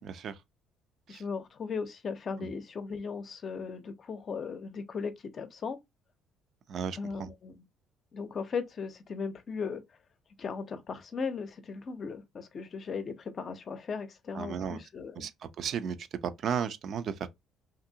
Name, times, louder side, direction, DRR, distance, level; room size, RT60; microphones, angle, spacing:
voice 1, 0.0-0.4 1.1-1.2 6.7-7.3 14.3-14.8 15.2-15.3 15.6-17.3, right 7 dB, 60° right, 0.4 m, -34 dB
voice 2, 1.1-5.8 7.0-7.6 8.1-9.8 10.4-15.3, left 5 dB, 45° left, 0.6 m, -37 dB
2.6 x 2.6 x 2.7 m
cardioid pair, 90°, 0 cm